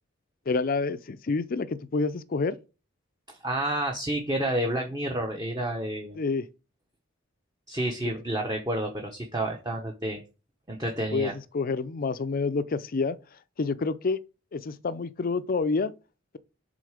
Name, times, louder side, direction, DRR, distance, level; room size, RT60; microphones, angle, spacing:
voice 1, 0.5-2.6 6.2-6.5 11.1-13.2 13.6-14.2 14.5-15.9, left 4 dB, 45° left, 0.4 m, -28 dB
voice 2, 3.3-6.2 7.7-10.2 10.7-11.3, right 1 dB, 20° right, 0.9 m, -30 dB
7.6 x 3.8 x 4.9 m
head